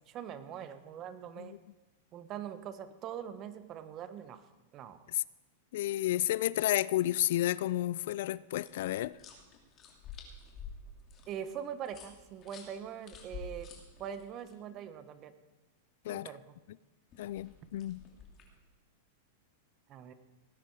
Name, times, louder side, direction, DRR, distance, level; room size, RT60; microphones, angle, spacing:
voice 1, 0.1-1.5 2.1-4.4 4.7-5.0 11.3-13.7 14.0-15.3 16.0-16.6 19.9-20.1, right 9 dB, 35° right, 1.2 m, -42 dB
voice 2, 5.7-9.1 16.1-16.3 17.2-18.0, left 14 dB, 65° left, 0.4 m, -31 dB
sound 1, 8.6-14.5 17.1-18.6, left 5 dB, 35° left, 3.0 m, -50 dB
18.0 x 10.5 x 4.8 m
hypercardioid pair, 120°, 0 cm